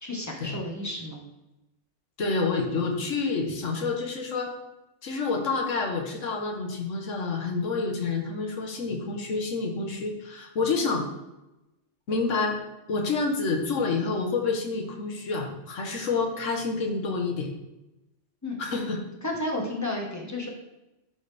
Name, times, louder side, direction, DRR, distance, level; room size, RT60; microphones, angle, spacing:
voice 1, 0.0-1.2 18.4-18.6 19.2-20.5, left 1 dB, 15° left, -1 dB, 1.3 m, -32 dB
voice 2, 2.2-4.5 5.0-11.0 12.1-12.6 12.9-17.5 18.6-19.0, left 4 dB, 85° left, 2 dB, 1.5 m, -28 dB
11.5 x 4.1 x 3.4 m, 0.96 s
omnidirectional pair, 1.3 m